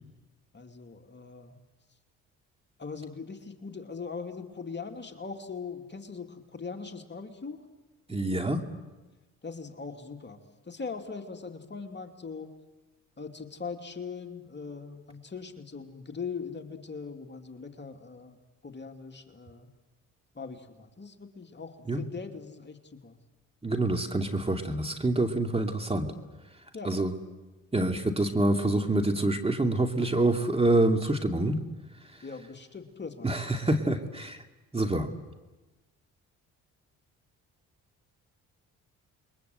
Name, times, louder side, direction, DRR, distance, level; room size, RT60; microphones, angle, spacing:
voice 1, 0.5-1.6 2.8-7.6 9.4-12.5 13.2-19.7 20.3-23.2 26.7-27.0 32.2-33.3, left 5 dB, 30° left, 4 dB, 2.8 m, -41 dB
voice 2, 8.1-8.6 21.9-22.0 23.6-26.1 26.8-27.2 27.7-31.6 33.2-34.4 34.7-35.1, right 2 dB, 15° right, 4 dB, 2.6 m, -26 dB
28.5 x 22.5 x 8.0 m, 1.2 s
supercardioid pair, 65°, 35 cm